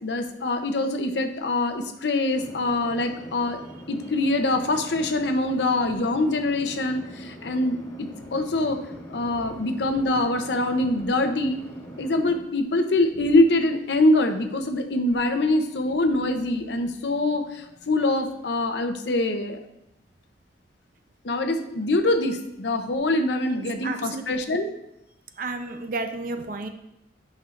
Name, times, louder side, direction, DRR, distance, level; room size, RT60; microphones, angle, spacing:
voice 1, 0.0-3.6 3.9-8.8 9.1-11.6 12.0-19.6 21.2-24.7, left 2 dB, 70° left, 6 dB, 0.7 m, -24 dB
sound 1, 2.3-12.4, equal, 20° left, 1.5 m, -42 dB
voice 2, 8.2-8.7 9.4-9.6 23.4-24.2 25.4-26.7, right 3 dB, 50° right, 6 dB, 0.6 m, -33 dB
11.0 x 5.5 x 2.5 m, 0.83 s
head